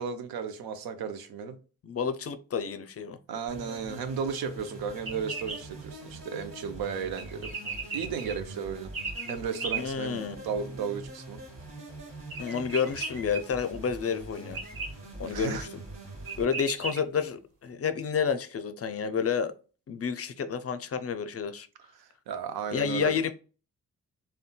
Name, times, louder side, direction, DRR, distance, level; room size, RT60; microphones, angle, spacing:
voice 1, 0.0-1.6 3.3-7.5 7.9-8.9 9.3-11.4 15.3-15.7 22.0-23.1, right 6 dB, 80° right, 0.5 m, -34 dB
voice 2, 1.8-3.2 9.7-10.5 12.4-14.6 15.2-15.7 16.4-19.5 19.9-21.7 22.7-23.3, left 6 dB, 40° left, 0.4 m, -30 dB
sound 1, 3.5-16.4, right 1 dB, 45° right, 1.4 m, -44 dB
sound 2, 5.0-5.6 7.2-8.3 8.9-9.8 12.3-13.4 14.5-14.9 15.9-16.0 16.3-17.0, right 4 dB, 65° right, 1.5 m, -36 dB
3.7 x 2.2 x 2.2 m
supercardioid pair, 45°, 36 cm